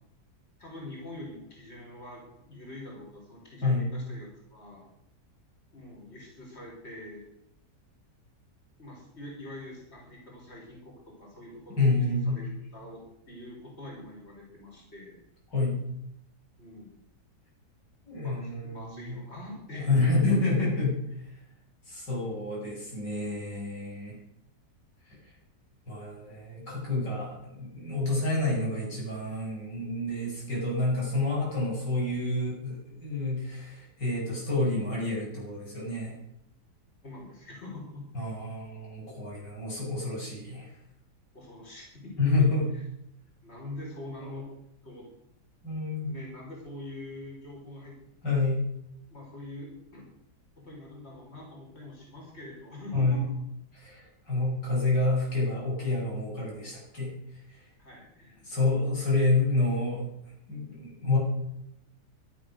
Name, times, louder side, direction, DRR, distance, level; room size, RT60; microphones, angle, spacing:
voice 1, 0.6-4.9 5.7-7.3 8.8-15.2 16.6-16.9 18.1-20.3 37.0-38.1 41.3-42.5 42.7-42.8 43.4-44.5 44.8-45.1 46.1-48.0 49.1-50.1 50.6-53.2 57.8-58.4, left 1 dB, 35° left, -2 dB, 5.7 m, -44 dB
voice 2, 11.8-12.4 15.5-15.8 18.1-19.2 19.7-21.0 21.3-21.4 21.9-24.2 25.1-25.2 25.9-36.2 38.1-40.7 42.2-42.6 45.6-46.1 48.2-48.6 52.9-53.2 53.8-57.1 57.5-57.7 58.4-60.0 60.5-61.2, left 2 dB, 90° left, -4 dB, 8.8 m, -28 dB
18.0 x 12.5 x 6.5 m, 0.77 s
omnidirectional pair, 1.8 m